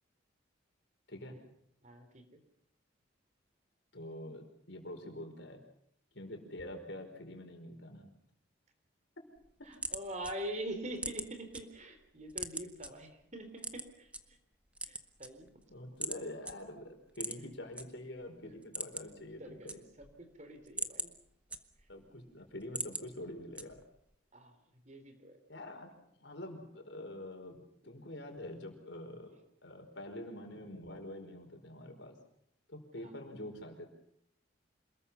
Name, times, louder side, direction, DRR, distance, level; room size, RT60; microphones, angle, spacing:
voice 1, 1.1-1.4 3.9-5.6 6.1-8.1 9.6-9.7 15.7-19.8 21.9-23.8 25.5-27.6 27.8-29.3 29.6-32.1 32.7-33.9, left 1 dB, 65° left, 4 dB, 5.0 m, -46 dB
voice 2, 1.8-2.4 9.6-14.4 14.8-15.5 19.4-21.1 24.3-24.5 24.9-25.4 33.0-33.1, right 1 dB, 35° right, 7 dB, 3.8 m, -44 dB
sound 1, 9.4-11.6 12.0-12.9 13.6-14.2 14.7-15.6 16.0-16.2 16.5-16.6 17.1-17.8 18.2-18.3 18.6-19.2 19.5-20.2 20.6-22.0 22.4-23.1 23.6-24.0, right 2 dB, 5° right, 1.2 m, -40 dB
27.5 x 21.0 x 5.8 m, 0.73 s
head